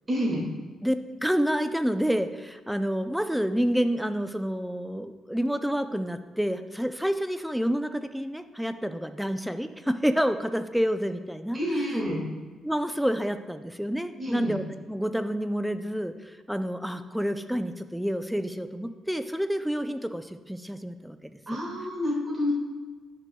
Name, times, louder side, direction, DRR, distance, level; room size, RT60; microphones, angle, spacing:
voice 1, 0.1-0.4 11.5-12.2 14.2-14.5 21.5-22.5, equal, 25° right, -4 dB, 2.1 m, -28 dB
voice 2, 0.8-11.6 12.6-21.2 21.5-21.6, equal, ahead, 9 dB, 0.5 m, -28 dB
11.0 x 6.0 x 2.3 m, 1.3 s
cardioid pair, 90°, 0 cm